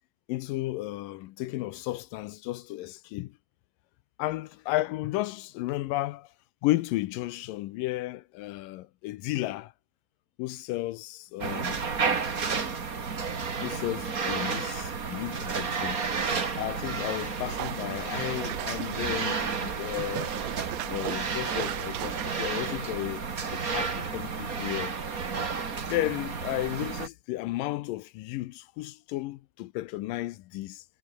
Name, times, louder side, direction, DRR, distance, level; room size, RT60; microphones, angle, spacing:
voice 1, 0.3-3.4 4.2-6.3 6.6-9.7 10.4-11.8 13.6-16.0 16.5-20.3 20.9-24.9 25.8-30.8, left 17 dB, 75° left, 2.3 m, -33 dB
sound 1, 11.4-27.1, right 5 dB, 30° right, 1.7 m, -32 dB
sound 2, 17.4-22.4, right 20 dB, 90° right, 2.4 m, -38 dB
omnidirectional pair, 4.2 m